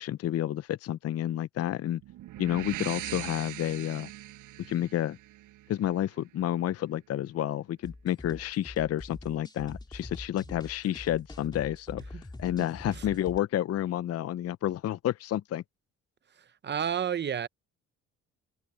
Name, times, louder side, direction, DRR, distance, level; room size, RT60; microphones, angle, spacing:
voice 1, 0.0-2.0 2.4-4.1 4.6-5.2 5.7-15.6, left 12 dB, 55° left, 0.6 m, -30 dB
sound 1, 2.0-5.9, right 15 dB, 90° right, 6.5 m, -41 dB
sound 2, 7.8-13.4, left 2 dB, 15° left, 2.6 m, -44 dB
voice 2, 16.6-17.5, right 8 dB, 35° right, 0.7 m, -30 dB
cardioid pair, 90°, 30 cm